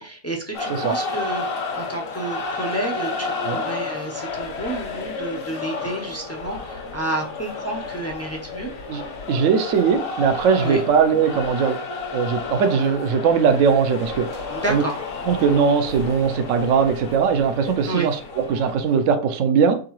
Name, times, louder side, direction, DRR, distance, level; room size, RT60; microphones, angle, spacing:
voice 1, 0.0-8.7 10.6-10.8 14.5-15.0 17.8-18.1, right 2 dB, 25° left, 0 dB, 0.3 m, -30 dB
sound 1, 0.5-19.1, left 4 dB, 65° left, 1.3 m, -31 dB
voice 2, 8.9-11.8 12.1-14.4 14.7-14.8 15.3-19.8, right 6 dB, 70° right, 7 dB, 1.0 m, -20 dB
4.6 x 3.7 x 3.0 m, 0.41 s
omnidirectional pair, 1.5 m